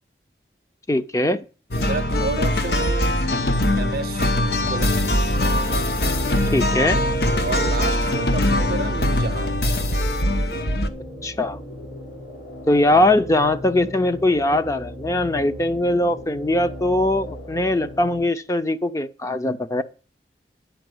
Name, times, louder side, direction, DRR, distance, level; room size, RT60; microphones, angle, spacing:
voice 1, 0.9-1.4 6.5-7.0 11.2-11.6 12.7-19.8, left 1 dB, 20° left, 0.5 m, -21 dB
sound 1, 1.7-10.9, left 1 dB, 60° left, 0.9 m, -22 dB
voice 2, 1.9-3.2 3.8-5.3 7.4-9.5 12.9-13.1, right 4 dB, 55° right, 0.5 m, -31 dB
sound 2, 5.0-18.2, left 1 dB, 75° left, 4.8 m, -37 dB
10.0 x 5.5 x 7.8 m
head